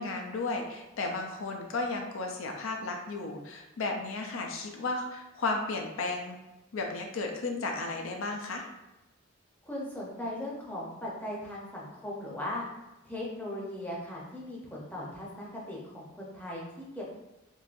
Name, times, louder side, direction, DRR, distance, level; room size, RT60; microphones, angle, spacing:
voice 1, 0.0-6.4 6.7-8.7, left 3 dB, 80° left, 2 dB, 0.5 m, -34 dB
voice 2, 9.6-12.6 13.0-17.0, left 1 dB, 10° left, -5 dB, 0.6 m, -38 dB
3.7 x 2.6 x 2.5 m, 1.0 s
head